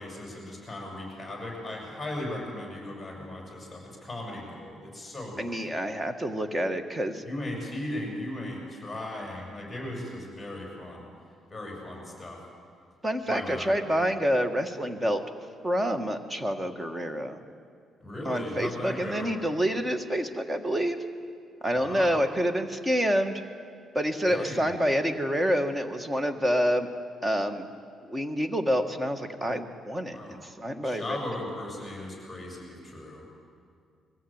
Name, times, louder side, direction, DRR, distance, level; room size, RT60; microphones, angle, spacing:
voice 1, 0.0-5.7 7.2-11.1 11.5-12.4 13.3-13.7 18.0-19.3 21.8-22.2 24.2-24.7 30.1-30.4 30.8-33.2, left 1 dB, 10° left, -1 dB, 6.9 m, -37 dB
voice 2, 5.4-7.2 13.0-15.2 15.6-17.4 18.2-21.0 21.6-23.4 23.9-26.9 27.2-27.7 28.0-31.2, equal, 15° right, 8 dB, 1.7 m, -27 dB
23.0 x 15.0 x 8.9 m, 2.2 s
cardioid pair, 90°, 0 cm